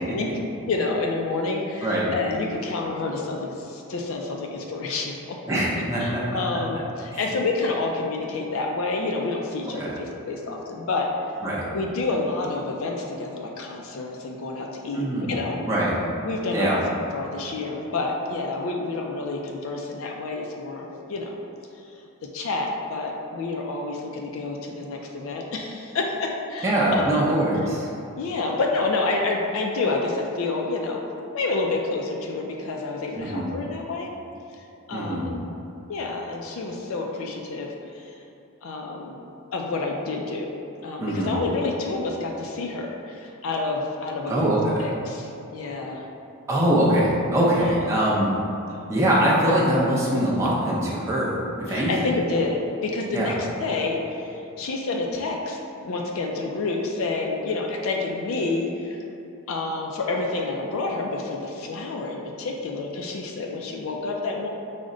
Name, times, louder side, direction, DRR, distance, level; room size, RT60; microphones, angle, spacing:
voice 1, 0.7-5.4 6.0-11.1 11.7-15.6 16.2-16.8 17.1-21.4 22.3-27.3 28.2-31.0 31.3-34.1 34.9-35.4 35.9-38.1 38.6-39.2 39.5-40.5 40.8-44.5 44.8-46.0 47.6-48.1 48.7-48.9 51.7-59.0 59.5-64.5, left 3 dB, 70° left, 0 dB, 0.4 m, -29 dB
voice 2, 5.5-6.2 7.1-7.3 9.8-9.9 11.4-11.6 14.9-15.4 15.7-16.0 16.5-16.8 26.6-27.9 33.2-33.5 34.9-35.3 41.0-41.4 44.3-44.9 46.5-48.4 48.9-51.9 53.1-53.3, right 1 dB, 15° right, -7 dB, 0.6 m, -23 dB
4.9 x 2.1 x 3.7 m, 2.7 s
head